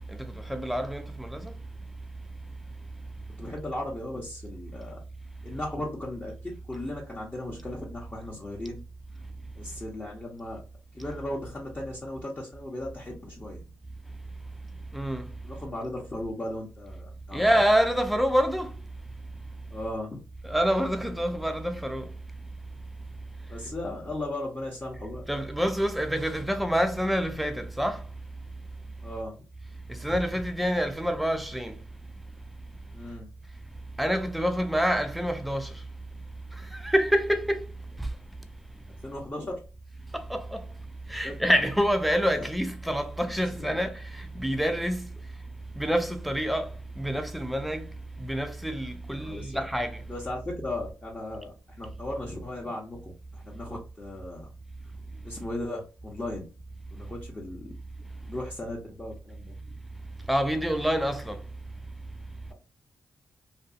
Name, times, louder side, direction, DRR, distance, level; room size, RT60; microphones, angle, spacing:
voice 1, 0.1-1.5 14.9-15.3 17.3-18.7 20.4-22.1 25.3-28.0 29.9-31.8 34.0-35.7 36.7-37.6 38.0-38.1 40.1-40.6 41.1-45.0 45.8-46.7 47.0-47.9 48.2-50.0 60.3-61.4, equal, ahead, 0.5 m, -27 dB
voice 2, 3.4-5.0 5.4-8.8 9.6-10.6 10.9-13.6 15.4-17.5 19.7-20.1 23.5-25.2 29.0-29.3 32.9-33.3 39.0-39.6 41.2-41.3 42.4-42.5 43.5-43.8 49.1-49.6 50.1-54.5 55.2-56.4 56.9-57.7 58.3-59.6, left 1 dB, 25° left, 0.8 m, -36 dB
2.6 x 2.3 x 2.5 m
supercardioid pair, 55°, 6 cm